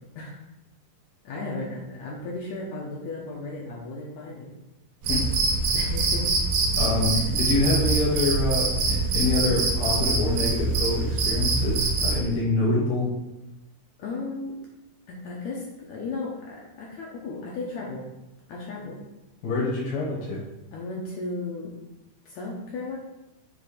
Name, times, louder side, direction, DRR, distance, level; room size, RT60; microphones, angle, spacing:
voice 1, 1.2-4.5 5.7-6.3 7.1-7.3 14.0-14.6 15.1-18.1 18.5-19.0 20.7-21.7 22.3-23.0, left 3 dB, 75° left, -3 dB, 1.7 m, -35 dB
Cricket, 5.0-12.2, right 3 dB, 75° right, 2.6 m, -24 dB
voice 2, 6.8-13.1 19.4-20.4, left 2 dB, 90° left, -7 dB, 3.3 m, -26 dB
7.7 x 2.6 x 4.9 m, 0.98 s
omnidirectional pair, 4.1 m